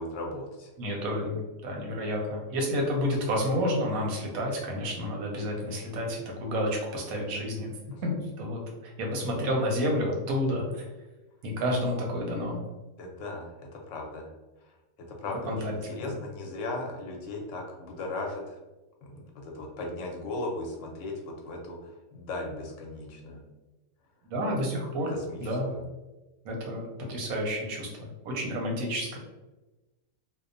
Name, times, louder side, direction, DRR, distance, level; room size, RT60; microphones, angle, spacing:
voice 1, 0.0-0.7 7.9-8.0 13.0-14.3 15.1-18.6 19.0-23.4 25.1-25.4 25.7-25.8, left 2 dB, 70° left, 0 dB, 0.9 m, -37 dB
voice 2, 0.8-7.7 8.0-10.9 11.4-12.6 15.5-15.7 16.0-16.1 24.2-25.1 25.4-25.7 26.4-29.2, equal, 90° right, 0 dB, 1.1 m, -30 dB
2.8 x 2.0 x 2.5 m, 1.1 s
omnidirectional pair, 1.4 m